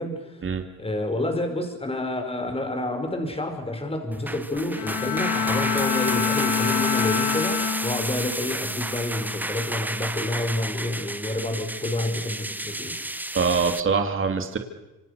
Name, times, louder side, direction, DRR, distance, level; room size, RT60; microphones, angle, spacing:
voice 1, 0.0-0.4 0.8-13.0, left 1 dB, 20° left, 6 dB, 5.5 m, -29 dB
sound 1, 4.1-13.8, right 1 dB, 5° right, 1.2 m, -31 dB
Bowed string instrument, 4.7-8.3 8.8-9.2, left 7 dB, 70° left, 3.7 m, -26 dB
voice 2, 13.3-14.6, right 5 dB, 45° right, 5 dB, 2.7 m, -23 dB
27.0 x 26.0 x 6.9 m, 1.0 s
cardioid pair, 90°, 30 cm